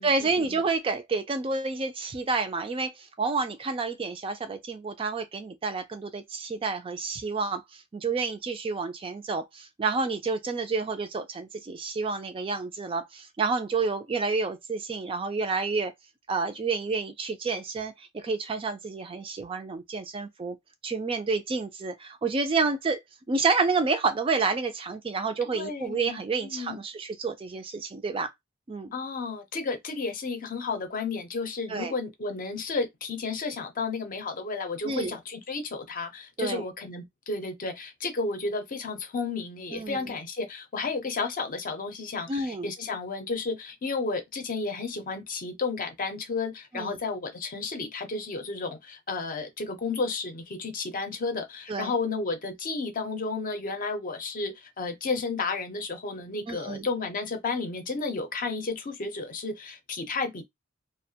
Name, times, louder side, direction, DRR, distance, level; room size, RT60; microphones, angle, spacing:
voice 1, 0.0-2.9 3.2-7.6 7.9-15.9 16.3-20.6 20.8-23.0 23.3-28.3 28.7-28.9 31.7-31.9 34.8-35.2 36.4-36.6 39.7-40.1 42.3-42.7 46.7-47.0 51.7-51.9 56.5-56.9, right 4 dB, 25° right, 0.3 m, -29 dB
voice 2, 25.5-26.2 26.5-26.8 28.9-60.4, left 4 dB, 45° left, 0.6 m, -32 dB
2.4 x 2.1 x 2.7 m
head